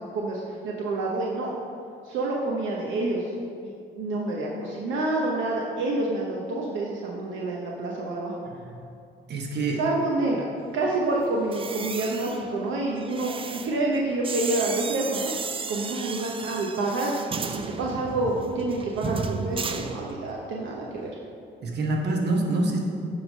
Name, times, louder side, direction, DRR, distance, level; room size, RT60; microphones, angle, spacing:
voice 1, 0.0-1.5 2.0-3.3 3.6-8.3 9.8-10.4 10.7-15.3 15.7-21.1, right 2 dB, 80° right, -2 dB, 0.7 m, -28 dB
voice 2, 9.3-9.8 21.6-22.8, right 2 dB, 55° right, 1 dB, 1.1 m, -26 dB
sound 1, 11.4-20.5 20.8-21.1, right 5 dB, 25° right, 0.4 m, -34 dB
8.4 x 3.3 x 5.2 m, 2.5 s
cardioid pair, 90°, 20 cm